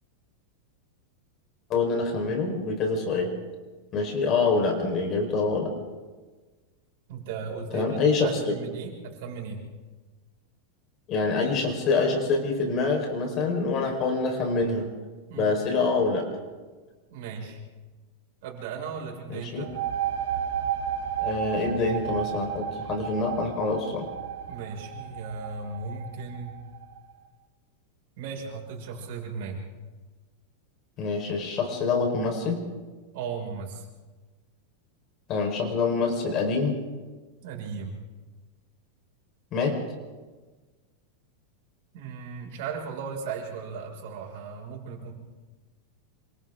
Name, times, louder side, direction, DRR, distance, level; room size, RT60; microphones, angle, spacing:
voice 1, 1.7-3.3 3.9-5.7 7.7-8.6 11.1-14.9 15.4-16.3 19.3-19.6 21.2-24.1 31.0-32.6 35.3-36.8 39.5-39.8, left 4 dB, 35° left, 2 dB, 4.8 m, -26 dB
voice 2, 7.1-9.6 15.3-15.6 17.1-17.6 18.4-19.7 24.5-26.6 28.2-29.7 33.1-33.8 37.4-38.0 41.9-45.1, right 5 dB, 60° right, 0 dB, 6.1 m, -36 dB
sound 1, 19.5-27.0, right 9 dB, 90° right, 3.2 m, -33 dB
27.5 x 25.5 x 3.9 m, 1.3 s
supercardioid pair, 155°, 0 cm